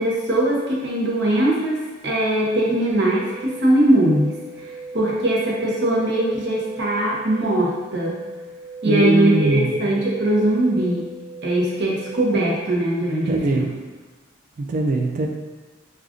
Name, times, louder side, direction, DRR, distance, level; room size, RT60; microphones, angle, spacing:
voice 1, 0.0-8.2 8.8-11.1 11.4-13.7, right 1 dB, 60° right, -2 dB, 0.7 m, -21 dB
sound 1, 2.9-12.4, right 2 dB, 5° left, 1.1 m, -38 dB
voice 2, 8.8-9.8 13.3-13.7 14.6-15.3, right 2 dB, 40° right, 2 dB, 0.3 m, -21 dB
4.8 x 2.3 x 2.5 m, 1.2 s
head